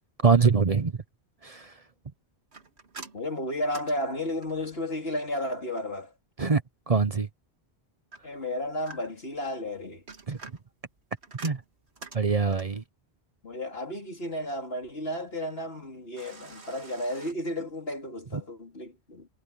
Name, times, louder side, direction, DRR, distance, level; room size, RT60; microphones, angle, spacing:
voice 1, 0.2-1.0 1.4-1.7 6.4-7.3 10.3-10.4 11.4-11.6 12.1-12.8, right 5 dB, 35° right, 0.9 m, -24 dB
sound 1, 2.5-4.8 8.1-9.3 9.9-12.8 16.2-17.3, right 3 dB, 75° right, 2.4 m, -47 dB
voice 2, 3.1-6.1 8.2-10.0 13.4-19.3, left 1 dB, 65° left, 3.8 m, -33 dB
omnidirectional pair, 1.1 m